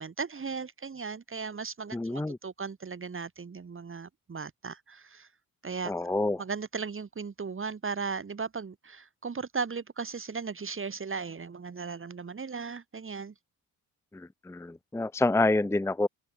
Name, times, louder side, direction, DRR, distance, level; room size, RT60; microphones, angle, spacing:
voice 1, 0.0-5.3 5.6-5.9 6.4-13.3, right 5 dB, 35° right, 2.4 m, -37 dB
voice 2, 1.9-2.4 5.8-6.4 14.1-16.1, left 2 dB, 5° left, 0.7 m, -28 dB
open air
cardioid pair, 90°, 37 cm